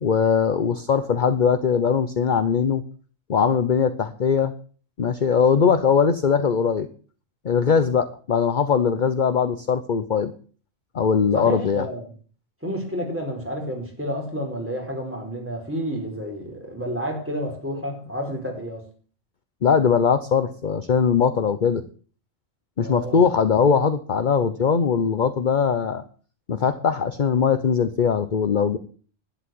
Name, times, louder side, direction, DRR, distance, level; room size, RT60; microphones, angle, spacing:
voice 1, 0.0-2.8 3.3-4.5 5.0-6.9 7.4-10.3 10.9-11.8 19.6-21.8 22.8-26.0 26.5-28.8, left 6 dB, 40° left, 0.9 m, -20 dB
voice 2, 11.3-12.1 12.6-18.9 22.8-23.5, equal, 10° right, 4.7 m, -30 dB
12.0 x 10.5 x 7.8 m
omnidirectional pair, 1.3 m